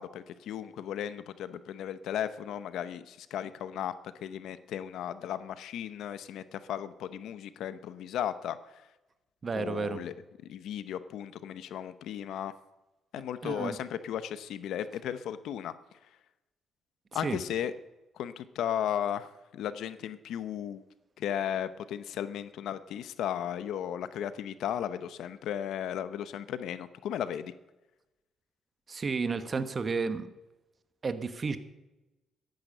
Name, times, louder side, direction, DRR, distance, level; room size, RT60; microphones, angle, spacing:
voice 1, 0.0-3.9 4.2-8.6 9.5-10.1 10.5-12.5 13.1-15.7 17.1-17.7 18.2-20.8 21.2-27.5, left 10 dB, 80° left, 13 dB, 0.7 m, -35 dB
voice 2, 9.4-10.0 13.4-13.8 17.1-17.4 28.9-30.3 31.0-31.6, right 4 dB, 35° right, 11 dB, 1.2 m, -32 dB
14.0 x 10.5 x 6.7 m, 1.0 s
cardioid pair, 90°, 0 cm